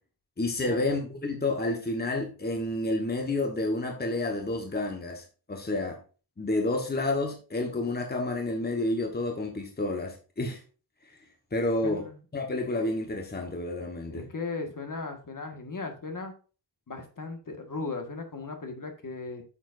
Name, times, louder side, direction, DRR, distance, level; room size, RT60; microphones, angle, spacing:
voice 1, 0.4-6.0 6.4-10.6 11.5-12.1 12.3-14.2, left 2 dB, 20° left, 1.3 m, -30 dB
voice 2, 11.8-12.2 14.1-16.3 16.9-19.4, left 3 dB, 45° left, 1.8 m, -37 dB
8.8 x 7.3 x 2.6 m
wide cardioid pair, 100°, 44 cm